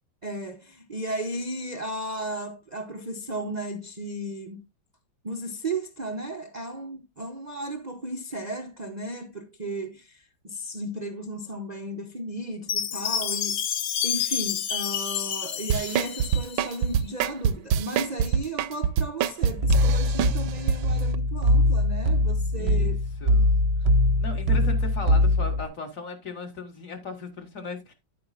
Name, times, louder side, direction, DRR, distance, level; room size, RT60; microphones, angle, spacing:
voice 1, 0.2-4.7 5.2-23.0 24.5-24.6, right 1 dB, 65° right, 0.4 m, -35 dB
Chime, 12.7-16.8, left 9 dB, 70° left, 1.5 m, -29 dB
sound 1, 15.7-20.8 21.1-21.2, right 8 dB, 85° right, 1.4 m, -24 dB
sound 2, 19.6-25.7, left 1 dB, 50° right, 0.8 m, -22 dB
voice 2, 22.5-22.9 23.2-23.6 24.2-27.9, left 2 dB, 45° left, 1.9 m, -37 dB
10.5 x 8.6 x 2.4 m
omnidirectional pair, 2.2 m